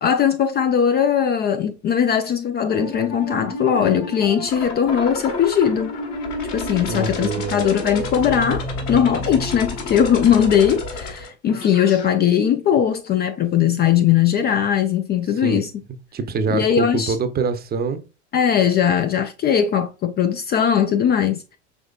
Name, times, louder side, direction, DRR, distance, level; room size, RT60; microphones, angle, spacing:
voice 1, 0.0-5.9 6.5-15.7 16.5-17.2 18.3-21.4, left 8 dB, 30° left, 0.4 m, -19 dB
sound 1, 2.7-12.1, left 2 dB, 55° left, 1.5 m, -30 dB
voice 2, 6.9-7.6 15.4-15.6 16.1-18.0, right 4 dB, 25° right, 0.7 m, -24 dB
5.2 x 3.1 x 2.4 m
hypercardioid pair, 100°, 35 cm